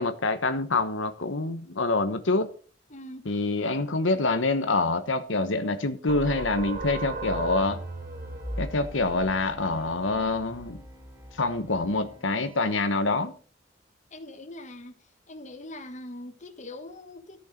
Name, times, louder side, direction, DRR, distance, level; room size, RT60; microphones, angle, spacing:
voice 1, 0.0-2.5 3.2-7.8 8.6-10.8 11.4-13.3, left 3 dB, 85° left, 1.2 m, -26 dB
voice 2, 2.9-3.3 14.1-14.9 15.3-17.4, left 1 dB, 40° left, 1.7 m, -42 dB
sound 1, 6.1-11.4, right 2 dB, 40° right, 3.3 m, -37 dB
sound 2, 6.3-12.8, left 1 dB, 15° right, 4.1 m, -50 dB
14.0 x 6.4 x 6.5 m
head